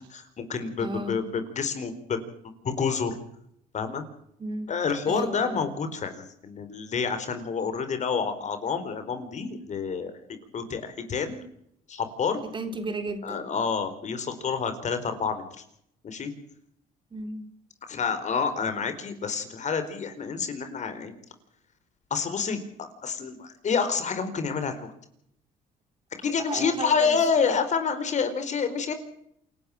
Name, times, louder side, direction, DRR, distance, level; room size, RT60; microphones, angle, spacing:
voice 1, 0.1-1.2 1.6-2.2 2.6-3.2 3.7-4.0 4.7-11.4 11.9-12.4 13.2-15.4 16.0-16.3 17.9-21.1 22.1-24.9 26.2-28.9, left 5 dB, 45° left, 10 dB, 4.4 m, -28 dB
voice 2, 0.8-1.2 4.4-4.7 5.1-5.7 12.4-13.5 17.1-17.5 26.2-27.2, right 2 dB, 30° right, 8 dB, 3.8 m, -34 dB
28.0 x 11.5 x 8.8 m, 0.71 s
cardioid pair, 110°, 17 cm